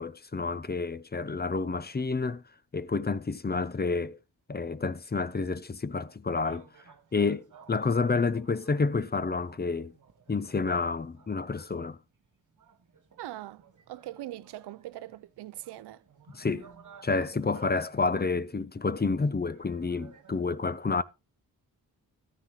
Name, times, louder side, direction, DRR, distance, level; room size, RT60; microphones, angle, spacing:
voice 1, 0.0-2.4 2.7-4.2 4.5-6.7 7.1-9.9 10.3-12.0 16.3-16.7 17.0-21.0, left 4 dB, 25° left, 0.7 m, -29 dB
sound 1, 6.4-20.4, right 6 dB, 50° right, 1.5 m, -57 dB
voice 2, 13.2-16.0, right 14 dB, 85° right, 0.5 m, -42 dB
13.5 x 9.7 x 3.1 m
cardioid pair, 50°, 39 cm